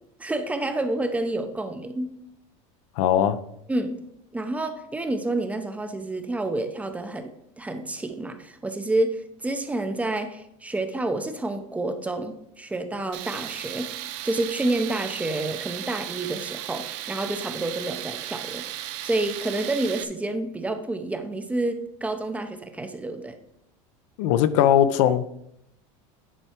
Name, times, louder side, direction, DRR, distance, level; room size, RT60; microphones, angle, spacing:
voice 1, 0.2-2.1 3.7-4.0 4.3-13.9 14.2-18.7 19.0-23.4, right 2 dB, 10° right, 8 dB, 0.6 m, -29 dB
voice 2, 3.0-3.4 24.2-25.2, left 10 dB, 75° left, 12 dB, 0.6 m, -19 dB
Tools, 13.1-20.0, right 13 dB, 70° right, 0.7 m, -35 dB
10.0 x 4.6 x 4.4 m, 0.77 s
supercardioid pair, 145°, 16 cm